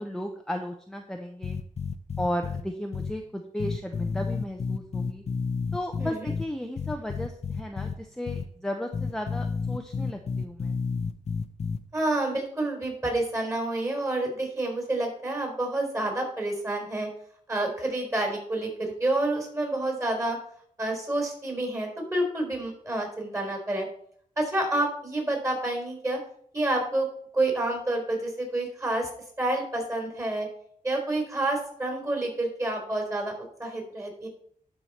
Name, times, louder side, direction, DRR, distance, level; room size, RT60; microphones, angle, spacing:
voice 1, 0.0-1.6 2.2-5.2 5.7-10.8, left 1 dB, 5° left, 3 dB, 0.8 m, -34 dB
sound 1, 1.4-2.6 2.9-3.1 3.6-6.4 6.8-7.9 8.3-8.4 8.9-11.8, left 5 dB, 50° left, 0.7 m, -30 dB
voice 2, 11.9-17.1 17.5-20.4 20.8-23.9 24.4-26.2 26.5-27.1 27.3-29.1 29.4-30.5 30.8-33.3 33.6-34.3, right 2 dB, 20° right, 1 dB, 4.2 m, -28 dB
12.5 x 5.0 x 4.3 m, 0.65 s
wide cardioid pair, 90°, 14 cm